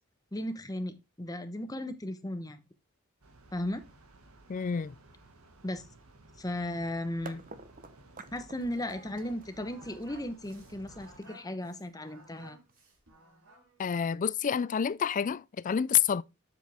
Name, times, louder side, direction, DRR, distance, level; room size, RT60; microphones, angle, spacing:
voice 1, 0.3-2.6 3.5-3.8 5.6-5.8 6.4-7.4 8.3-12.6, left 1 dB, 15° left, 0.9 m, -36 dB
sound 1, 3.2-11.2, right 2 dB, 90° right, 1.7 m, -56 dB
voice 2, 4.5-4.9 13.8-16.2, left 8 dB, 35° left, 0.4 m, -28 dB
sound 2, 7.2-13.1, right 3 dB, 40° right, 1.0 m, -51 dB
Singing, 8.7-13.8, right 1 dB, 70° right, 5.1 m, -56 dB
8.1 x 7.3 x 3.5 m
head